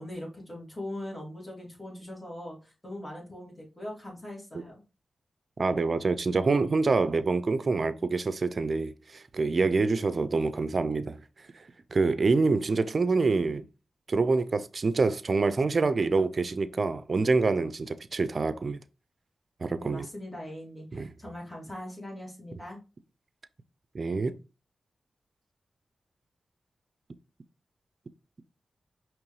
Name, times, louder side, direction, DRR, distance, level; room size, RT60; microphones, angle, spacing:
voice 1, 0.0-4.8 19.8-22.8, left 1 dB, 15° left, 2.5 m, -41 dB
voice 2, 5.6-11.2 11.9-13.6 14.1-18.8 19.6-20.1 20.9-21.1 23.9-24.4, right 3 dB, 55° right, 0.5 m, -26 dB
5.1 x 3.1 x 3.1 m
cardioid pair, 45°, 0 cm